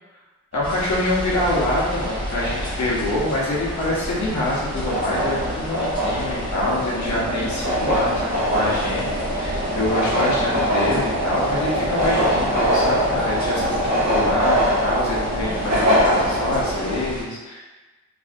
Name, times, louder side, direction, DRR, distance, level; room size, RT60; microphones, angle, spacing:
voice 1, 0.5-9.1 9.3-17.8, left 1 dB, 70° left, -5 dB, 0.8 m, -25 dB
sound 1, 0.5-17.1, equal, 60° right, 0.8 m, -24 dB
sound 2, 0.6-17.2, equal, 15° left, 0.8 m, -33 dB
2.6 x 2.4 x 2.5 m, 1.2 s
wide cardioid pair, 120°, 29 cm